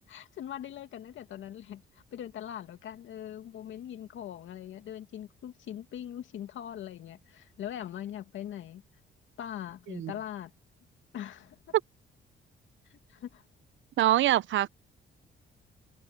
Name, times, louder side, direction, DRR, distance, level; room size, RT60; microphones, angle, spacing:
voice 1, 0.1-8.8 9.4-10.5 11.1-11.7 12.9-13.4, left 10 dB, 75° left, 2.5 m, -41 dB
voice 2, 14.0-14.7, right 13 dB, 70° right, 0.8 m, -24 dB
cardioid pair, 90°, 20 cm